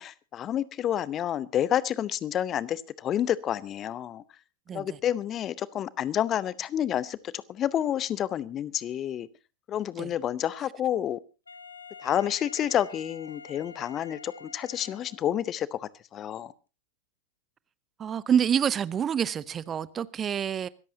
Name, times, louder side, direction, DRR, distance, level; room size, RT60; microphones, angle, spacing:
voice 1, 0.0-4.2 4.7-9.3 9.7-11.2 12.0-16.5, left 10 dB, 30° left, 0.8 m, -29 dB
Wind instrument woodwind instrument, 11.5-15.4, left 4 dB, 75° left, 1.1 m, -47 dB
voice 2, 18.0-20.7, right 8 dB, 25° right, 0.7 m, -27 dB
25.0 x 14.0 x 2.8 m
figure-of-eight pair, 90°, 0 cm